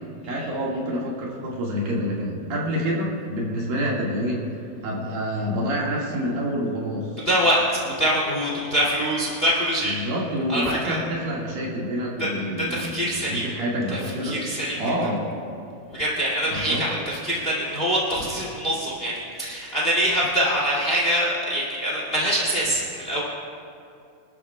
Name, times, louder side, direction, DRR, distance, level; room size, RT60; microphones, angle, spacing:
voice 1, 0.3-4.5 4.8-7.1 9.8-14.4 14.8-15.3 16.5-16.9, equal, 70° right, -4 dB, 3.7 m, -27 dB
voice 2, 7.2-10.0 10.5-11.0 12.2-12.3 12.7-13.5 13.9-14.9 15.9-23.2, equal, 20° left, -5 dB, 2.3 m, -24 dB
25.0 x 13.0 x 2.4 m, 2.5 s
omnidirectional pair, 4.4 m